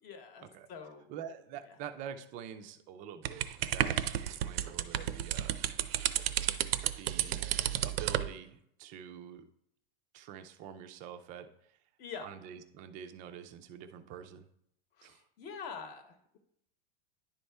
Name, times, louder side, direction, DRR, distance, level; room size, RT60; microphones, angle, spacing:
voice 1, 0.0-1.1 12.0-12.3 15.0-16.4, left 6 dB, 35° left, 7 dB, 0.9 m, -45 dB
voice 2, 1.1-5.6 5.9-6.5 6.9-7.5 7.8-9.5 10.1-11.8 12.2-14.5 15.0-15.2, right 8 dB, 25° right, 10 dB, 0.4 m, -46 dB
sound 1, 3.2-8.3, right 12 dB, 75° right, 0.6 m, -32 dB
10.5 x 4.2 x 3.3 m, 0.72 s
supercardioid pair, 155°, 30 cm